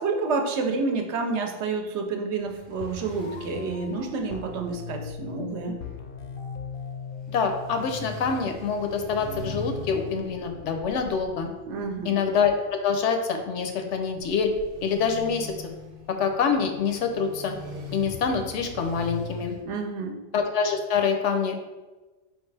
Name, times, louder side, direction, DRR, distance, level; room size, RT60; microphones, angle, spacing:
voice 1, 0.0-5.8 11.7-12.2 19.7-20.2, right 4 dB, 70° right, 3 dB, 0.9 m, -29 dB
sound 1, 2.4-19.6, left 1 dB, 35° right, 0.7 m, -42 dB
sound 2, 2.8-8.8, left 6 dB, 60° left, 0.6 m, -39 dB
voice 2, 7.3-11.5 12.0-14.5 14.8-15.5 16.1-17.6 17.9-19.6 20.3-21.6, left 6 dB, 75° left, 5 dB, 0.9 m, -26 dB
4.6 x 3.1 x 3.3 m, 1.2 s
omnidirectional pair, 1.3 m